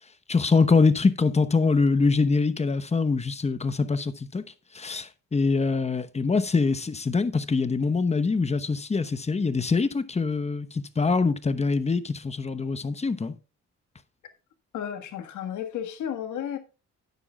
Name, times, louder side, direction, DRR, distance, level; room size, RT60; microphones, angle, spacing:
voice 1, 0.3-4.4 4.7-13.3, left 4 dB, 20° left, 0.9 m, -24 dB
voice 2, 14.7-16.6, left 9 dB, 75° left, 1.6 m, -33 dB
12.5 x 9.8 x 2.3 m
cardioid pair, 90°, 30 cm